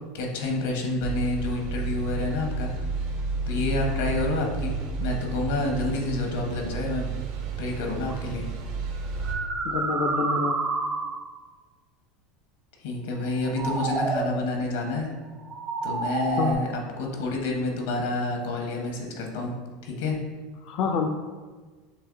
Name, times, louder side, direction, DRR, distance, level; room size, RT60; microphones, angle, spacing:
voice 1, 0.1-2.7 3.5-7.1 7.6-8.4 12.8-15.1 15.8-19.5 19.8-20.2, left 2 dB, 80° left, 1 dB, 1.0 m, -29 dB
sound 1, 1.0-9.3, right 4 dB, 70° right, 0.7 m, -31 dB
sound 2, 8.1-8.2 9.0-11.4 13.3-14.4 15.4-16.5, right 3 dB, 30° right, 0.5 m, -29 dB
voice 2, 9.6-10.6 16.4-16.6 20.6-21.1, left 5 dB, 55° left, 2 dB, 0.3 m, -27 dB
6.7 x 3.0 x 2.6 m, 1.4 s
supercardioid pair, 130°, 0 cm